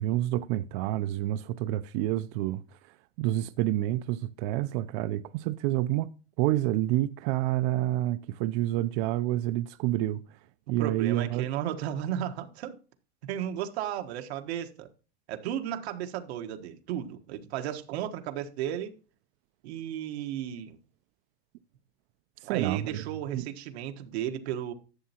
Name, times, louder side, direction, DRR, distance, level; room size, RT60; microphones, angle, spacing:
voice 1, 0.0-2.6 3.2-10.4 10.7-11.5 22.4-23.0 23.3-23.5, right 14 dB, 50° right, 0.5 m, -28 dB
voice 2, 10.8-12.7 13.3-14.9 15.3-18.9 19.6-20.8 22.4-24.7, right 10 dB, 90° right, 1.4 m, -34 dB
11.5 x 7.2 x 2.8 m
supercardioid pair, 155°, 32 cm